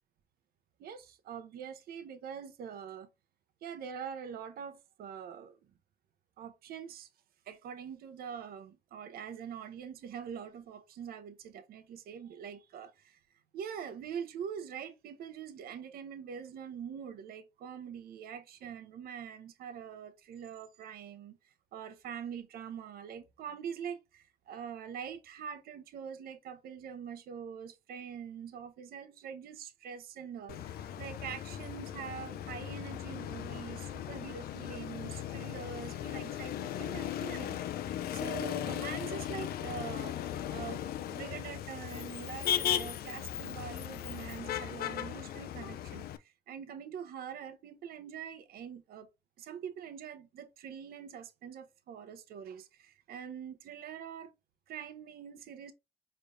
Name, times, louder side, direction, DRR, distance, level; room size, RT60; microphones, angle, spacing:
voice 1, 0.8-3.1 3.6-5.6 6.4-7.1 7.5-13.2 13.5-37.6 38.1-40.2 40.5-49.1 49.4-54.3 54.7-55.7, right 8 dB, 65° right, 0.8 m, -44 dB
Motor vehicle (road), 30.5-46.2, left 11 dB, 65° left, 0.6 m, -37 dB
5.1 x 3.3 x 2.6 m
cardioid pair, 110°, 17 cm